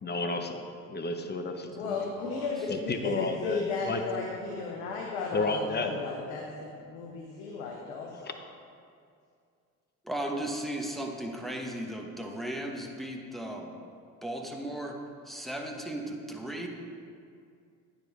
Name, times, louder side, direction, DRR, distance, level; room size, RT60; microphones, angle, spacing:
voice 1, 0.0-0.6 0.9-2.0 2.7-4.0 5.3-6.1 8.2-8.3, left 3 dB, 25° left, 6 dB, 0.8 m, -32 dB
voice 2, 1.7-8.3, left 4 dB, 80° left, -1 dB, 0.9 m, -34 dB
voice 3, 10.0-13.7 14.2-15.0 15.2-16.7, right 1 dB, ahead, 1 dB, 1.1 m, -36 dB
9.5 x 5.3 x 4.0 m, 2.3 s
hypercardioid pair, 65°, 40 cm